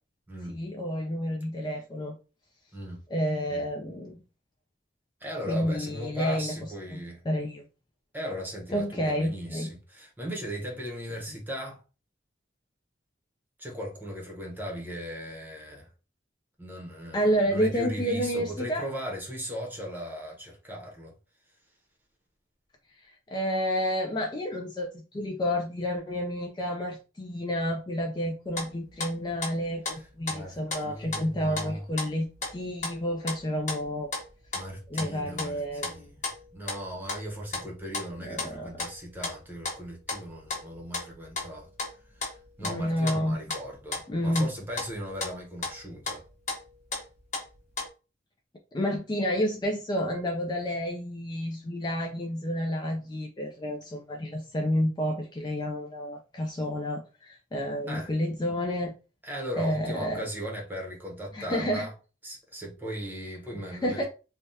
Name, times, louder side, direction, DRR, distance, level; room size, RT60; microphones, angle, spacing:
voice 1, 0.5-2.2 3.1-4.2 5.5-6.6 6.9-7.0 7.3-7.6 8.7-9.7 17.1-18.8 23.3-34.1 34.9-36.1 38.2-38.7 42.6-43.4 44.1-44.5 48.7-58.9 59.6-60.2 61.3-61.9 63.5-64.1, equal, 25° left, 0.4 m, -30 dB
voice 2, 5.2-7.2 8.1-11.8 13.6-15.9 16.6-21.1 29.9-31.9 34.5-36.2 36.5-41.7 42.1-46.2 57.9-58.1 59.2-61.9 62.2-64.1, equal, 10° right, 0.8 m, -38 dB
sound 1, 28.5-29.1 29.4-30.8 31.1-44.1 44.4-47.9, left 3 dB, 40° left, 1.0 m, -35 dB
3.3 x 2.3 x 2.7 m
head